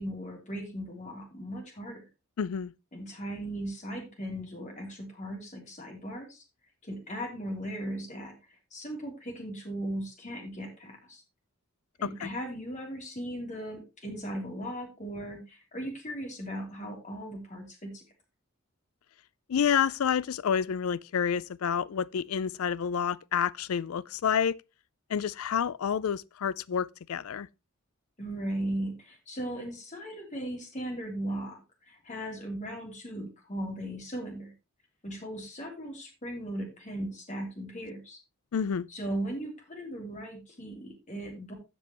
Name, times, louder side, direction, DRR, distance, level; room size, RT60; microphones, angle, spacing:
voice 1, 0.0-2.0 2.9-6.4 6.8-8.3 8.7-11.2 12.0-18.0 28.2-34.5 35.0-38.2 38.9-41.5, right 1 dB, 35° left, 3.2 m, -37 dB
voice 2, 2.4-2.7 12.2-12.3 19.5-24.6 25.1-27.5 38.5-38.9, left 7 dB, 80° left, 0.4 m, -29 dB
15.0 x 5.4 x 3.0 m
head